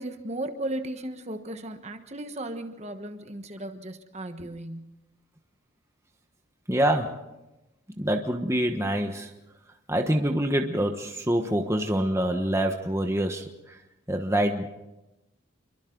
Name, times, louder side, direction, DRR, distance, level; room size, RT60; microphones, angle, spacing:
voice 1, 0.0-5.0, right 1 dB, 35° right, 7 dB, 1.3 m, -36 dB
voice 2, 6.7-7.2 8.0-9.3 9.9-13.8 14.1-14.7, right 1 dB, 15° right, 4 dB, 1.2 m, -26 dB
28.0 x 23.5 x 3.9 m, 0.95 s
head